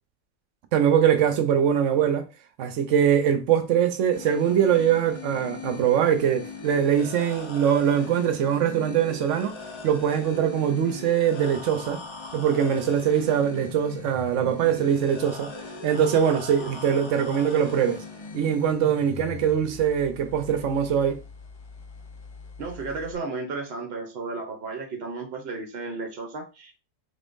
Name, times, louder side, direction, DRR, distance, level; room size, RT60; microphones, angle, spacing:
voice 1, 0.7-2.3 2.6-12.0 12.3-15.5 15.8-18.0 18.3-21.2, right 8 dB, 85° right, 1.0 m, -22 dB
sound 1, 4.1-23.1, left 4 dB, 35° left, 0.4 m, -40 dB
voice 2, 22.6-26.8, right 3 dB, 60° right, 1.0 m, -34 dB
3.6 x 3.6 x 2.5 m
omnidirectional pair, 1.2 m